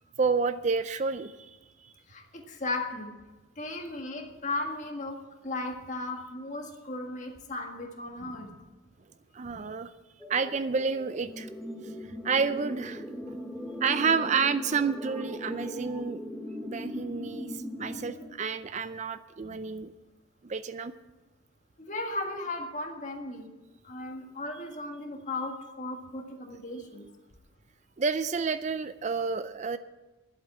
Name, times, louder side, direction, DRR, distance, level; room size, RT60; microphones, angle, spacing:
voice 1, 0.2-1.6 1.8-1.9 9.3-9.9 10.3-11.5 12.2-13.4 13.8-16.2 16.6-19.9 20.4-20.9 28.0-29.8, right 5 dB, 35° right, 12 dB, 0.4 m, -30 dB
voice 2, 2.1-3.1 3.6-5.2 5.4-8.5 19.4-19.6 21.8-23.5 23.8-27.1, left 2 dB, 40° left, 3 dB, 1.7 m, -36 dB
sound 1, 10.2-18.3, equal, ahead, 1.3 m, -39 dB
11.5 x 8.1 x 8.5 m, 1.1 s
head